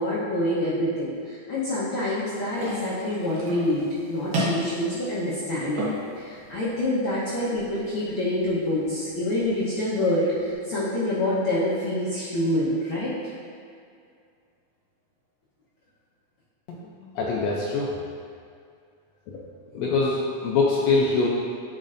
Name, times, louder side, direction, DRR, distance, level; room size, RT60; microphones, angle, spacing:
voice 1, 0.0-3.8 4.1-5.9 6.2-13.1, left 1 dB, 60° left, -9 dB, 1.4 m, -26 dB
sound 1, 2.5-10.5, right 1 dB, 60° right, 1.4 m, -35 dB
voice 2, 16.7-17.9 19.7-21.3, left 3 dB, 75° left, -4 dB, 1.7 m, -24 dB
9.0 x 5.4 x 2.5 m, 2.3 s
omnidirectional pair, 3.4 m